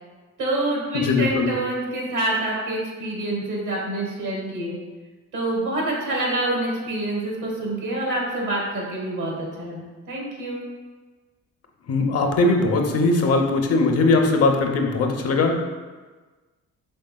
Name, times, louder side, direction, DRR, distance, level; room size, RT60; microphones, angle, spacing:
voice 1, 0.4-4.8 5.3-10.6, right 1 dB, 85° right, -3 dB, 1.3 m, -26 dB
voice 2, 0.9-1.5 11.9-15.6, left 3 dB, 55° left, 3 dB, 0.6 m, -20 dB
5.2 x 3.4 x 2.2 m, 1.3 s
cardioid pair, 90°, 30 cm